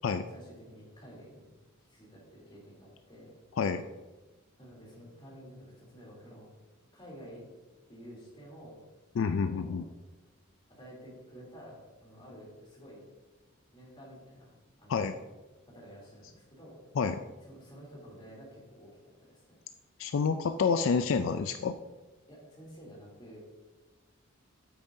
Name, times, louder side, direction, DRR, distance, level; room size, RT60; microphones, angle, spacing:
voice 1, 0.3-1.5 1.9-3.3 4.6-6.5 6.9-7.4 7.9-8.8 9.3-9.8 10.7-13.0 13.7-15.3 15.7-16.8 17.5-18.9 19.3-19.6 22.3-23.4, equal, 25° left, -4 dB, 3.0 m, -51 dB
voice 2, 9.2-9.8 14.9-15.1 17.0-17.2 20.0-21.8, left 5 dB, 70° left, 9 dB, 0.4 m, -28 dB
9.1 x 8.6 x 2.7 m, 1.2 s
head